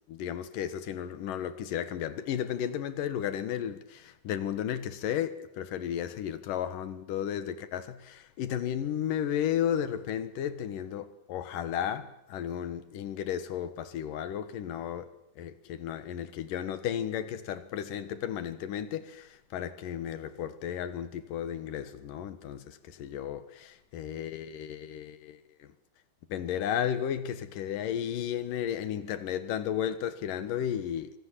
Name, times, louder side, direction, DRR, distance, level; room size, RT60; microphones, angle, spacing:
voice 1, 0.1-25.7 26.3-31.2, left 9 dB, 65° left, 2.8 m, -34 dB
27.0 x 25.0 x 7.6 m
omnidirectional pair, 4.6 m